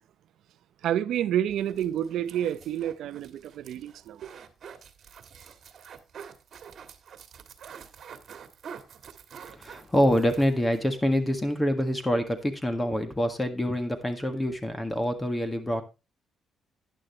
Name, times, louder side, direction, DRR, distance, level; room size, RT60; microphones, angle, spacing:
voice 1, 0.8-4.3, right 10 dB, 80° right, 0.6 m, -29 dB
sound 1, 1.5-10.8 11.2-11.3 11.5-11.6, right 7 dB, 60° right, 1.5 m, -47 dB
voice 2, 9.6-15.8, equal, 15° left, 1.7 m, -26 dB
11.0 x 10.5 x 3.1 m
cardioid pair, 90°, 0 cm